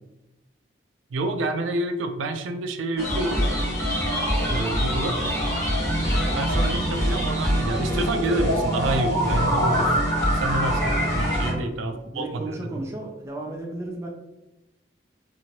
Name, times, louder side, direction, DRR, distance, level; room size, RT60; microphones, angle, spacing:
voice 1, 1.1-3.4 4.5-5.2 6.3-9.9 10.2-12.8, right 2 dB, 90° right, 6 dB, 0.4 m, -28 dB
sound 1, 3.0-11.5, equal, 15° left, 0.8 m, -24 dB
voice 2, 11.4-14.1, right 2 dB, 15° right, -1 dB, 0.4 m, -34 dB
2.8 x 2.6 x 2.9 m, 0.98 s
head